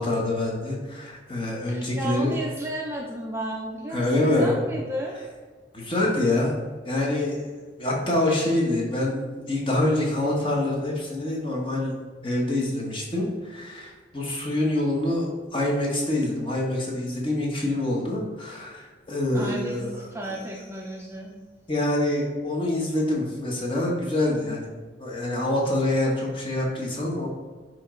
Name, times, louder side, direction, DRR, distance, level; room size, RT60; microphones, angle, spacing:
voice 1, 0.0-2.3 3.9-4.5 5.7-6.6 6.8-7.5 7.8-11.9 12.2-19.9 21.7-24.7 25.0-27.3, left 1 dB, 30° left, -2 dB, 1.2 m, -26 dB
voice 2, 1.7-5.2 19.3-21.4, right 1 dB, 15° right, -2 dB, 0.6 m, -33 dB
9.4 x 3.1 x 3.8 m, 1.5 s
head